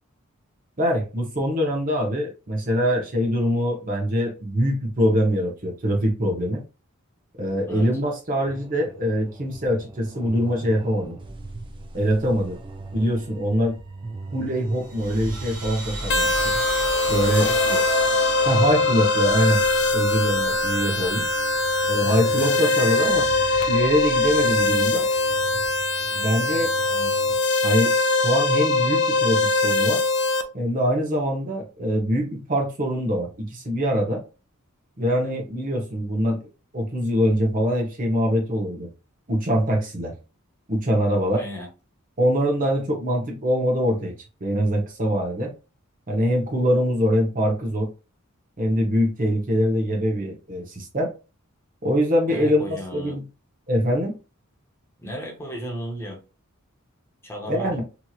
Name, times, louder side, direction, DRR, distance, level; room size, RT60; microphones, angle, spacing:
voice 1, 0.8-6.6 7.4-11.2 11.9-12.6 12.9-13.8 14.3-16.5 17.1-17.5 18.5-19.6 19.9-21.3 21.9-23.3 23.7-25.1 26.1-26.7 27.6-27.9 28.2-30.0 30.5-34.2 35.0-36.4 36.7-38.9 39.3-40.1 40.7-41.4 42.2-45.5 46.1-47.9 48.6-51.1 51.8-53.2 53.7-54.2 57.5-57.8, equal, 40° right, 0.9 m, -23 dB
sound 1, 8.5-27.4, right 2 dB, 25° right, 0.4 m, -40 dB
sound 2, 14.8-25.4, right 2 dB, 85° right, 1.0 m, -34 dB
sound 3, 16.1-30.4, left 3 dB, 55° left, 0.4 m, -22 dB
voice 2, 17.4-17.9 26.9-27.1 41.3-41.7 52.3-53.2 55.0-56.2 57.2-57.7, equal, 10° left, 0.7 m, -34 dB
2.9 x 2.7 x 2.3 m
head